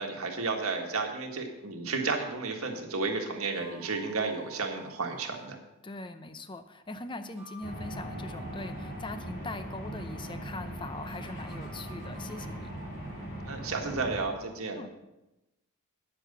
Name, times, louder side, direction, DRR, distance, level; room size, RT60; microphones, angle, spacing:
voice 1, 0.0-5.6 13.4-14.8, right 4 dB, 80° right, 2 dB, 1.7 m, -32 dB
sound 1, 3.4-5.5 7.2-9.2 11.1-13.2, right 1 dB, ahead, 3.0 m, -51 dB
voice 2, 5.8-12.7 14.8-14.9, left 2 dB, 20° left, 9 dB, 0.6 m, -41 dB
sound 2, 7.6-14.2, right 1 dB, 40° left, 3.6 m, -40 dB
9.6 x 7.4 x 6.7 m, 0.98 s
head